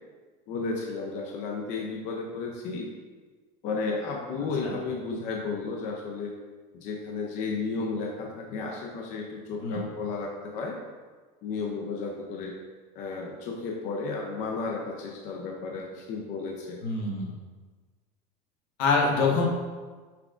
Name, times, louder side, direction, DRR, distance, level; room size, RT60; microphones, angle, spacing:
voice 1, 0.5-2.9 3.6-6.3 6.7-10.8 11.4-12.5 13.0-16.8, left 4 dB, 35° left, 0 dB, 0.4 m, -33 dB
voice 2, 16.8-17.3 18.8-19.5, left 4 dB, 75° left, -1 dB, 1.0 m, -25 dB
5.7 x 3.5 x 2.4 m, 1.4 s
cardioid pair, 160°, 20 cm